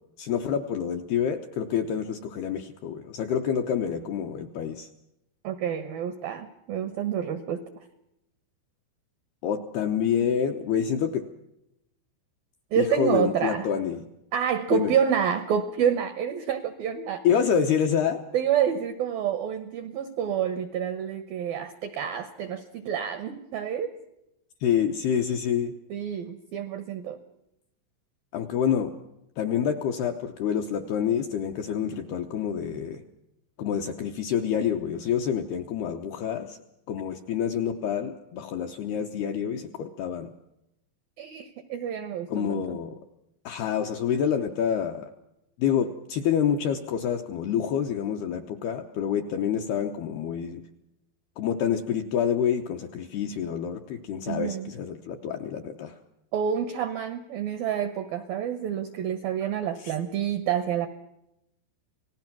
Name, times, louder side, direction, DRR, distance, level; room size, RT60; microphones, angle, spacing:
voice 1, 0.2-4.9 9.4-11.2 12.8-14.0 14.7-14.9 17.2-18.2 24.6-25.7 28.3-28.9 29.4-33.0 33.6-36.6 36.9-40.3 42.3-43.0 43.5-45.1 45.6-50.6 51.4-56.0 59.8-59.9, left 8 dB, 75° left, 4 dB, 2.3 m, -27 dB
voice 2, 5.4-7.6 12.7-13.7 14.3-17.2 18.3-23.9 25.9-27.2 41.2-42.8 54.3-54.7 56.3-60.9, right 8 dB, 80° right, 10 dB, 2.1 m, -28 dB
28.0 x 19.0 x 6.1 m, 0.85 s
omnidirectional pair, 5.8 m